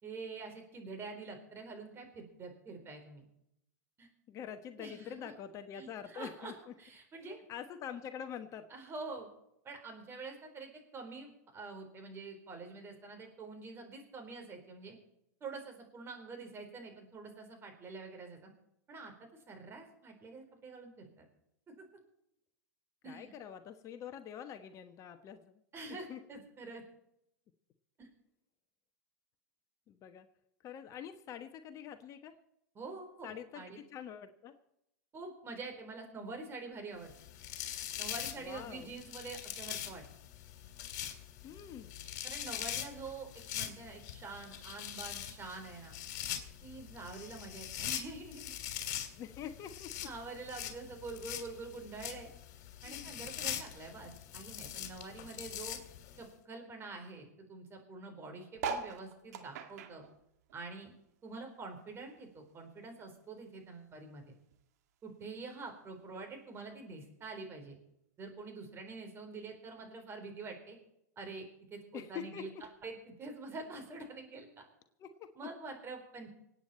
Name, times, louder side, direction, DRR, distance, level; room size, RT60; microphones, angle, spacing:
voice 1, 0.0-3.2 4.0-4.1 4.8-5.3 5.7-6.5 6.8-7.4 8.7-9.3 9.6-15.0 15.4-18.5 18.9-21.3 21.7-21.8 23.0-23.3 25.7-26.8 28.0-28.1 32.7-33.8 35.1-37.1 38.0-40.0 42.2-43.3 43.5-46.0 46.6-48.5 50.0-52.3 52.8-55.8 56.2-60.0 60.5-60.9 61.2-64.2 65.0-67.8 68.2-70.8 71.2-72.5 72.8-74.7 75.4-76.3, right 3 dB, 25° right, 4 dB, 4.1 m, -46 dB
voice 2, 4.3-6.7 7.5-8.7 23.0-25.6 25.9-26.2 29.9-30.3 30.6-32.3 33.2-34.6 38.4-38.9 41.4-41.9 49.2-50.1 52.8-53.1 66.1-66.2 71.9-72.6 75.0-75.3, left 8 dB, 35° left, 8 dB, 1.1 m, -45 dB
sound 1, 37.1-56.2, left 11 dB, 55° left, 2.9 m, -43 dB
sound 2, 58.5-61.3 61.7-63.2 63.7-63.8 63.9-64.0 64.2-64.6 65.4-65.5, right 5 dB, 65° right, 1.9 m, -42 dB
25.5 x 9.2 x 4.4 m, 0.79 s
hypercardioid pair, 110°, 9 cm